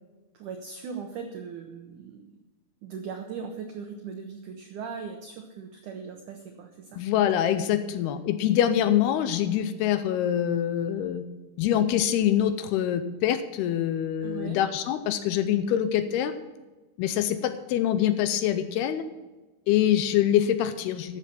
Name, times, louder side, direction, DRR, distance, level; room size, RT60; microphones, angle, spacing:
voice 1, 0.3-2.4 2.8-7.0 7.9-8.0 14.2-14.6, right 6 dB, 85° right, 4 dB, 1.7 m, -39 dB
voice 2, 7.0-11.2 11.6-16.3 17.0-19.0 19.7-21.2, left 10 dB, 80° left, 11 dB, 2.5 m, -25 dB
12.5 x 7.5 x 5.9 m, 1.2 s
omnidirectional pair, 4.9 m